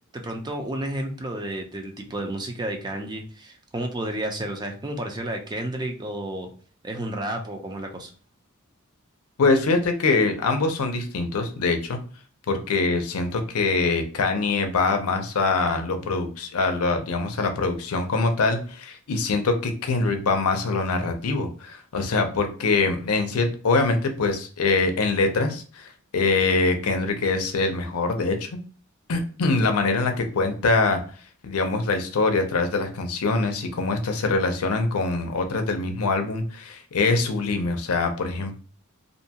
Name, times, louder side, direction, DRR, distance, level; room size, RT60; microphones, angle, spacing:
voice 1, 0.1-6.5 6.8-8.1, right 1 dB, 20° right, 3 dB, 0.4 m, -31 dB
voice 2, 9.4-12.0 12.5-28.5 29.1-31.0 31.4-38.6, left 3 dB, 85° left, 6 dB, 0.5 m, -24 dB
2.6 x 2.2 x 2.7 m, 0.40 s
head